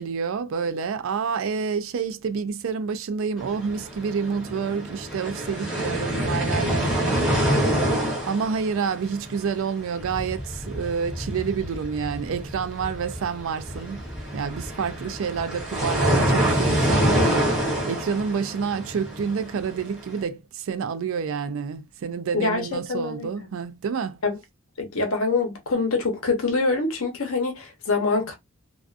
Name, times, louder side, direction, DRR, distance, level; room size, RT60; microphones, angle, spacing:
voice 1, 0.0-7.6 8.2-14.0 14.3-24.2, right 6 dB, 70° right, 0.3 m, -29 dB
sound 1, 3.4-20.1, equal, 5° right, 1.0 m, -26 dB
voice 2, 22.3-23.5 24.2-24.4 24.8-28.3, left 3 dB, 75° left, 0.9 m, -25 dB
2.4 x 2.2 x 2.4 m
head